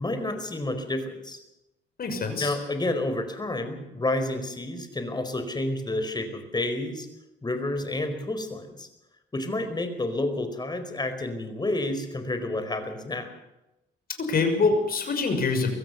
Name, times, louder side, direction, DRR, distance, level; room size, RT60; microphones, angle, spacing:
voice 1, 0.0-1.4 2.4-7.1 7.4-8.9 9.3-13.3, left 2 dB, 20° left, 8 dB, 4.6 m, -30 dB
voice 2, 2.0-2.5 14.2-15.7, left 4 dB, 50° left, 5 dB, 6.2 m, -25 dB
23.0 x 16.0 x 7.1 m, 0.92 s
cardioid pair, 90°, 20 cm